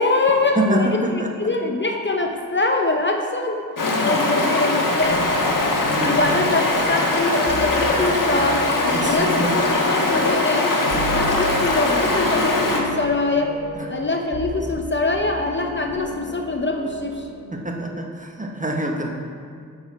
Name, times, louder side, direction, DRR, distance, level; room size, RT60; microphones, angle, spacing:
voice 1, 0.0-1.0 1.4-3.6 4.0-5.3 6.0-8.7 9.0-13.6 13.9-17.2, left 2 dB, 30° left, 3 dB, 0.7 m, -23 dB
voice 2, 0.6-1.3 5.8-6.2 8.9-9.6 13.7-13.9 17.5-19.1, right 1 dB, 20° right, 1 dB, 1.2 m, -25 dB
Stream, 3.8-12.8, left 2 dB, 60° left, 1.4 m, -21 dB
sound 1, 5.0-17.6, right 2 dB, 60° right, 1.8 m, -36 dB
8.4 x 6.7 x 4.7 m, 2.2 s
cardioid pair, 55°, 37 cm